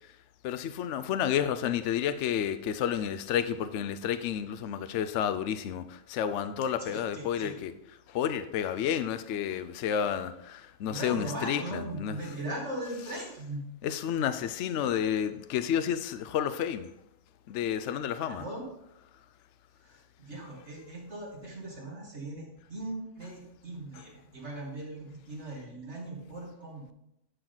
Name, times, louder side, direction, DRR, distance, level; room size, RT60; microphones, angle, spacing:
voice 1, 0.4-7.7 8.1-12.3 13.8-16.9 17.5-18.4 23.9-24.0, left 9 dB, 70° left, 0.9 m, -31 dB
voice 2, 6.8-7.5 10.9-13.6 18.2-18.6 19.8-26.9, right 1 dB, 60° right, 3.0 m, -39 dB
11.5 x 6.2 x 3.9 m
omnidirectional pair, 1.3 m